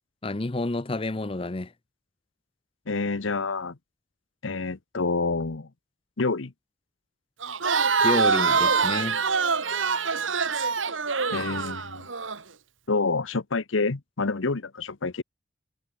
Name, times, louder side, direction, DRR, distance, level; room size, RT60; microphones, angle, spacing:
voice 1, 0.2-1.7 8.0-9.2, left 2 dB, 30° left, 0.6 m, -29 dB
voice 2, 2.9-3.8 4.4-5.7 6.2-6.5 11.3-12.1 12.9-15.2, left 3 dB, 85° left, 1.0 m, -28 dB
Crowd, 7.4-12.4, right 5 dB, 80° right, 2.1 m, -24 dB
head